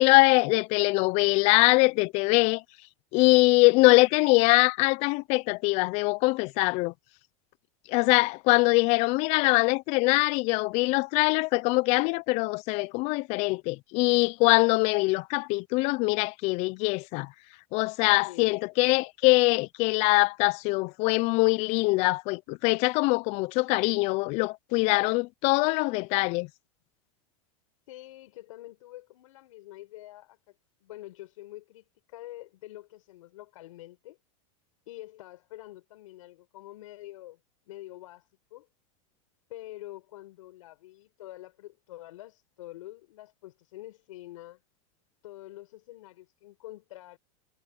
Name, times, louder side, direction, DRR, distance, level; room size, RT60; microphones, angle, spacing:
voice 1, 0.0-2.6 3.1-6.9 7.9-17.3 17.7-26.5, left 25 dB, 40° left, 0.4 m, -23 dB
voice 2, 18.2-18.6 27.9-30.5 30.8-34.2 34.9-37.4 37.7-38.7 39.5-44.6 45.2-47.2, left 16 dB, 75° left, 7.2 m, -46 dB
supercardioid pair, 145°, 17 cm